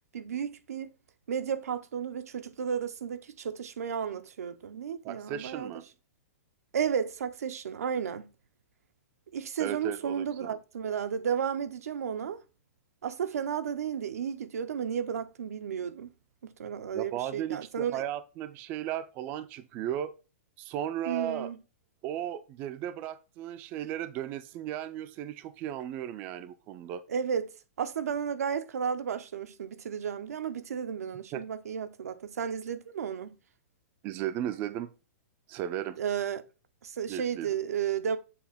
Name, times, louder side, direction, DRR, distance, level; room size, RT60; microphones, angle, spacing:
voice 1, 0.1-0.9 1.3-5.7 6.7-8.3 9.3-12.4 13.0-16.1 16.6-18.0 21.1-21.6 27.1-27.5 27.8-33.3 36.0-36.4 36.8-38.2, right 7 dB, 85° right, 0.7 m, -33 dB
voice 2, 5.0-5.8 9.6-10.6 16.9-20.1 20.6-21.5 22.0-27.0 31.3-31.4 34.0-34.9 35.5-36.0 37.1-37.5, right 11 dB, 20° right, 0.3 m, -35 dB
7.0 x 2.8 x 5.0 m
hypercardioid pair, 165°, 8 cm